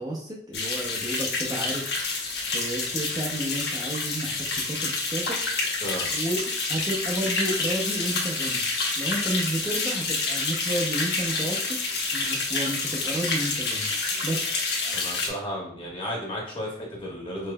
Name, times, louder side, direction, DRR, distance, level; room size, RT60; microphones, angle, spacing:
voice 1, 0.0-2.2 2.5-5.4 6.1-6.4 6.7-8.6 9.0-11.8 12.1-13.9 14.2-14.5, right 1 dB, 20° right, -2 dB, 0.6 m, -31 dB
sound 1, 0.5-15.3, left 3 dB, 65° left, 1.0 m, -28 dB
voice 2, 14.9-17.5, equal, 30° left, -3 dB, 1.4 m, -33 dB
5.4 x 3.1 x 2.2 m, 0.71 s
head